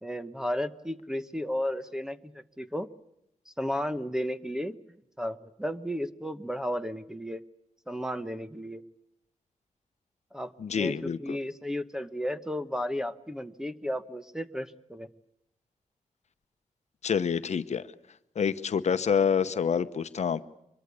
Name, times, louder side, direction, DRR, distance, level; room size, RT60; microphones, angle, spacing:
voice 1, 0.0-2.9 3.5-4.8 5.2-7.4 7.9-8.8 10.3-15.1, equal, 5° right, 11 dB, 1.0 m, -33 dB
voice 2, 10.6-11.4 17.0-17.8 18.4-20.4, left 7 dB, 60° left, 11 dB, 0.9 m, -27 dB
25.0 x 22.5 x 8.3 m, 0.78 s
wide cardioid pair, 135°, 13 cm